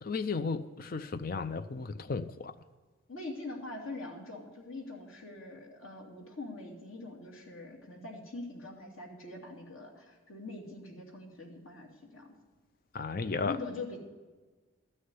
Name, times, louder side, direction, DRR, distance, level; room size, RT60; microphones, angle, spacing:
voice 1, 0.0-2.5 12.9-13.6, left 4 dB, 45° left, 10 dB, 0.5 m, -34 dB
voice 2, 3.1-12.3 13.4-14.0, left 2 dB, 85° left, -1 dB, 2.7 m, -43 dB
13.5 x 6.6 x 9.5 m, 1.3 s
head